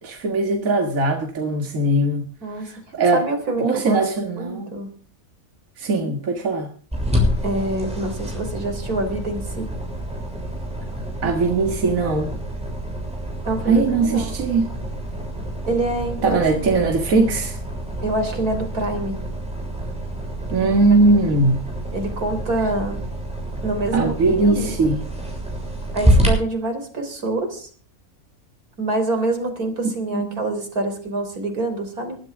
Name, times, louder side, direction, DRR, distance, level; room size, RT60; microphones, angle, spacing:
voice 1, 0.0-2.3 2.5-3.3 3.6-4.7 5.8-6.7 11.2-12.3 13.7-14.7 16.2-17.6 20.5-21.7 23.9-25.0 30.1-30.4, right 3 dB, 65° right, 3 dB, 2.1 m, -20 dB
voice 2, 2.4-2.7 3.1-4.0 4.4-4.9 7.4-9.7 13.5-14.3 15.7-16.2 16.5-16.7 18.0-19.2 20.6-21.3 21.9-23.0 23.6-24.8 25.9-27.7 28.8-32.2, right 2 dB, 85° right, 5 dB, 4.2 m, -26 dB
sound 1, 6.9-26.3, equal, 5° right, 6.7 m, -27 dB
21.0 x 12.5 x 3.6 m, 0.43 s
omnidirectional pair, 1.5 m